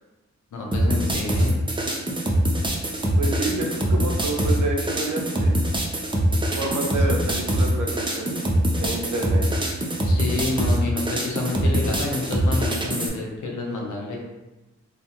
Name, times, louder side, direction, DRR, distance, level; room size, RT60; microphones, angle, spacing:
voice 1, 0.5-1.5 10.0-14.2, left 3 dB, 85° left, -1 dB, 0.6 m, -29 dB
sound 1, 0.7-13.1, right 1 dB, 15° right, 0.5 m, -23 dB
voice 2, 3.2-5.5 6.6-8.4 8.8-9.5, right 2 dB, 85° right, 1 dB, 0.5 m, -29 dB
2.4 x 2.2 x 2.8 m, 1.1 s
cardioid pair, 50°, 29 cm